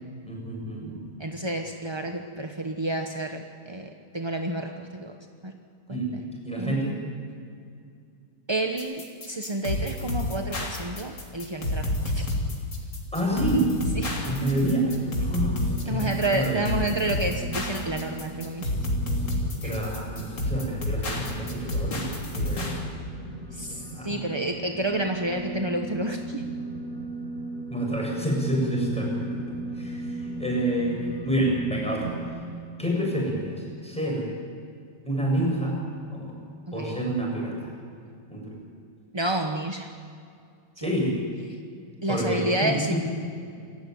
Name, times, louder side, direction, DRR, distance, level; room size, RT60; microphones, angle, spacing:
voice 1, 0.3-1.1 5.9-6.9 13.1-13.7 14.2-16.7 19.6-22.0 22.3-22.7 23.7-24.2 27.7-29.4 29.7-31.0 31.2-32.2 32.8-34.2 35.0-35.8 36.1-36.4 36.7-37.7 38.3-38.6 40.8-41.1 42.1-43.0, right 1 dB, 5° left, -2 dB, 7.3 m, -28 dB
voice 2, 1.2-5.2 5.4-5.5 5.9-6.2 6.6-7.0 8.5-12.4 14.0-14.1 15.9-18.7 19.6-19.7 23.5-26.4 36.7-37.1 39.1-39.9 40.8-40.9 42.0-42.9, right 1 dB, 25° right, 4 dB, 0.6 m, -30 dB
sound 1, 8.8-22.8, left 1 dB, 55° left, 3.8 m, -29 dB
sound 2, 13.3-32.2, right 2 dB, 20° left, 6.6 m, -37 dB
27.0 x 14.5 x 9.3 m, 2.3 s
omnidirectional pair, 2.4 m